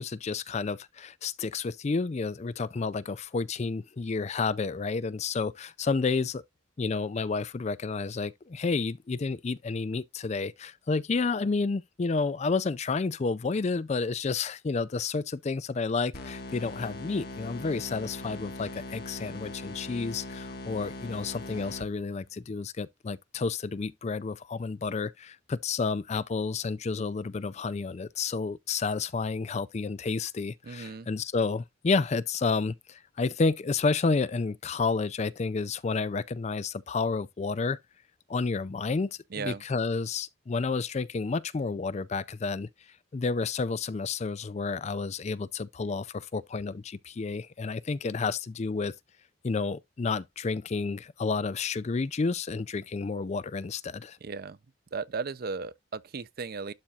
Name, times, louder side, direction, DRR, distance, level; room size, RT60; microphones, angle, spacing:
voice 1, 0.0-6.4 6.8-37.8 38.3-42.7 43.1-48.9 49.4-54.2, left 4 dB, 35° left, 0.4 m, -30 dB
sound 1, 16.1-22.2, left 2 dB, 50° left, 1.6 m, -41 dB
voice 2, 30.6-31.1 39.3-39.6 54.2-54.6 54.9-56.7, right 4 dB, 50° right, 0.5 m, -36 dB
12.0 x 4.2 x 2.4 m
head